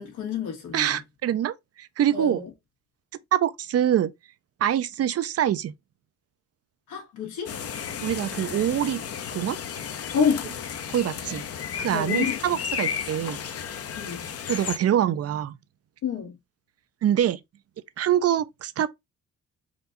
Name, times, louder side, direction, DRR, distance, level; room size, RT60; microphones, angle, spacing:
voice 1, 0.0-0.9 2.1-2.4 6.9-7.5 10.1-10.5 11.9-12.4 14.0-14.3 16.0-16.4, left 6 dB, 85° left, 1.9 m, -28 dB
voice 2, 0.7-2.4 3.3-4.1 4.6-5.7 8.0-9.0 9.3-9.6 10.9-13.4 14.5-15.6 17.0-17.4 18.0-18.9, right 10 dB, 50° right, 0.6 m, -25 dB
sound 1, 7.5-14.8, left 8 dB, 50° left, 0.8 m, -33 dB
4.4 x 2.6 x 3.9 m
cardioid pair, 90°, 30 cm